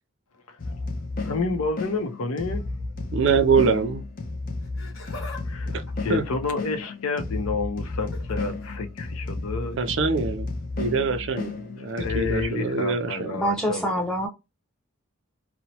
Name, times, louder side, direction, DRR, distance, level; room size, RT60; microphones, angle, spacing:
sound 1, 0.6-12.5, left 3 dB, 40° left, 0.5 m, -32 dB
voice 1, 1.2-2.6 5.5-9.9 11.8-14.0, left 3 dB, 85° left, 0.6 m, -30 dB
voice 2, 3.1-4.0 5.7-5.8 6.1-6.2 9.8-10.5 10.8-13.4, right 5 dB, 60° right, 0.4 m, -24 dB
Laughter, 4.6-5.4 5.7-7.1 8.0-8.4 9.7-9.9 10.8-10.9, left 3 dB, 65° left, 1.2 m, -42 dB
voice 3, 13.3-14.3, equal, 5° left, 0.6 m, -25 dB
2.9 x 2.0 x 2.8 m
head